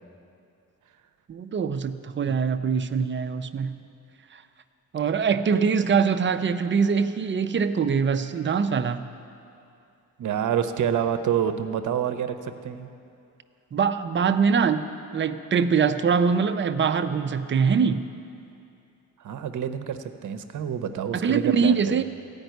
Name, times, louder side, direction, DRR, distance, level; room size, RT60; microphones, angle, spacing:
voice 1, 1.3-3.7 4.3-4.4 4.9-9.1 13.7-14.9 15.1-18.1 21.1-22.0, right 6 dB, 35° right, 10 dB, 0.5 m, -23 dB
voice 2, 10.2-12.9 19.2-22.0, right 8 dB, 65° right, 9 dB, 0.8 m, -28 dB
14.5 x 5.3 x 9.2 m, 2.6 s
cardioid pair, 130°, 33 cm